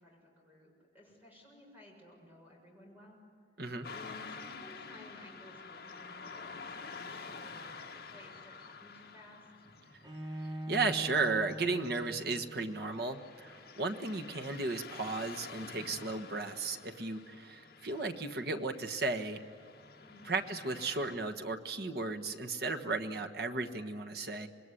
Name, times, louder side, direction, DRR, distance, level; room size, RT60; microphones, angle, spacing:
voice 1, 0.0-3.2 3.9-9.7 20.0-20.3, left 1 dB, 10° right, -1 dB, 6.9 m, -56 dB
Car passing by / Traffic noise roadway noise, 3.8-21.1, left 5 dB, 60° left, 1.7 m, -49 dB
Bowed string instrument, 10.0-13.0, right 1 dB, 25° right, 2.4 m, -43 dB
voice 2, 10.4-19.4 20.2-24.5, right 3 dB, 55° right, 5 dB, 1.4 m, -35 dB
26.5 x 21.0 x 9.9 m, 2.2 s
head